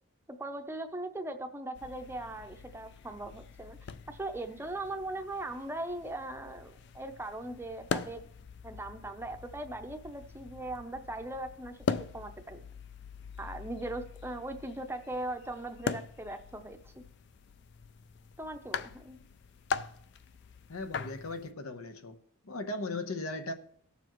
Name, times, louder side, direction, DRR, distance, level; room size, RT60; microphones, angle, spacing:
voice 1, 0.3-3.8 4.1-8.3 8.6-11.9 12.1-12.7 13.4-17.0 18.4-19.2, right 2 dB, 10° right, 6 dB, 0.6 m, -39 dB
sound 1, 1.8-21.5, left 5 dB, 50° left, 0.4 m, -42 dB
voice 2, 20.7-22.2 22.4-23.5, left 2 dB, 85° left, 8 dB, 1.0 m, -37 dB
18.0 x 7.0 x 3.0 m, 0.66 s
head